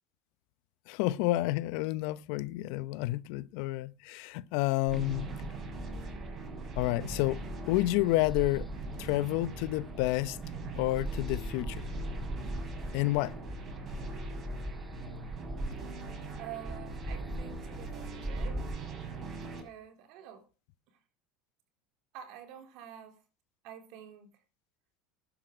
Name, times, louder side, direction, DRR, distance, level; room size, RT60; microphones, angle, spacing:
voice 1, 0.9-5.3 6.8-7.4 7.7-8.7 9.0-10.4 10.8-11.8 12.9-13.3, left 17 dB, 65° left, 0.8 m, -29 dB
sound 1, 4.9-18.8, right 1 dB, 5° right, 1.5 m, -41 dB
sound 2, 4.9-19.6, right 3 dB, 40° right, 7.0 m, -42 dB
voice 2, 16.4-18.6 19.4-20.4 22.1-23.2 23.6-24.3, right 10 dB, 60° right, 3.6 m, -48 dB
13.0 x 10.5 x 5.0 m
hypercardioid pair, 95°, 0 cm